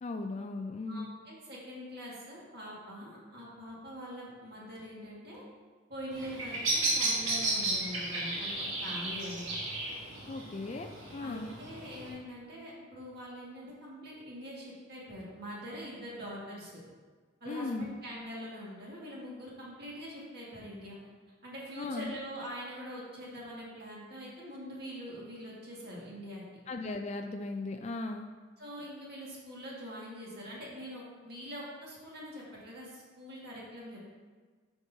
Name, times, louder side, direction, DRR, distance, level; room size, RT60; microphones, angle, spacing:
voice 1, 0.0-1.1 10.3-11.5 17.5-17.9 21.8-22.2 26.7-28.3, left 3 dB, 35° left, 5 dB, 0.3 m, -37 dB
voice 2, 0.9-5.4 5.9-9.4 11.2-16.8 17.4-21.0 21.4-26.4 28.6-34.0, equal, 50° right, -5 dB, 1.9 m, -44 dB
Bird vocalization bird call bird song, 6.1-12.1, right 2 dB, 85° right, 1.9 m, -33 dB
9.0 x 5.9 x 2.8 m, 1.5 s
head